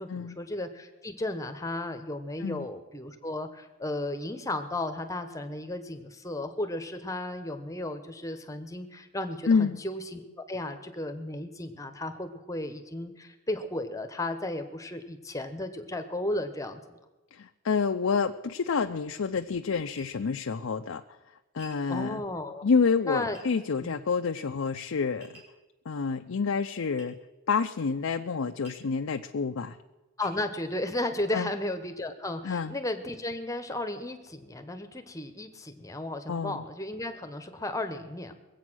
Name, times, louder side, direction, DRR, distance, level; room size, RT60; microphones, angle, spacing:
voice 1, 0.0-17.0 21.9-22.7 23.0-23.4 23.8-24.0 30.2-38.3, left 1 dB, 15° left, 7 dB, 0.9 m, -34 dB
voice 2, 9.5-9.8 17.3-21.0 21.5-22.2 22.6-25.4 25.9-27.2 27.5-29.8 31.3-31.5 32.4-32.7 36.3-36.6, left 5 dB, 75° left, 6 dB, 0.5 m, -28 dB
Tap, 20.0-20.2 21.6-21.8 23.3-23.5 25.2-25.6 27.0-27.1 28.6-28.9 29.6-29.7 30.2-30.4, right 1 dB, 50° right, 5.1 m, -51 dB
22.0 x 8.3 x 6.2 m, 1.1 s
head